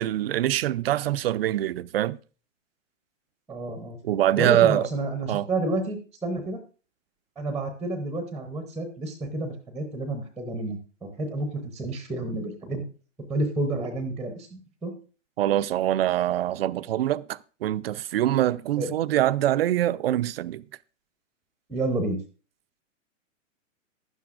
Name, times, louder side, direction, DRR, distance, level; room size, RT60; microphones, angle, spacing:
voice 1, 0.0-2.2 4.0-4.8 5.3-5.5 15.4-20.6, right 13 dB, 50° right, 0.5 m, -24 dB
voice 2, 3.5-4.0 4.4-6.6 7.4-12.8 13.3-14.9 18.8-18.9 21.7-22.2, right 2 dB, 5° right, 0.6 m, -30 dB
15.5 x 11.0 x 2.4 m
hypercardioid pair, 155°, 39 cm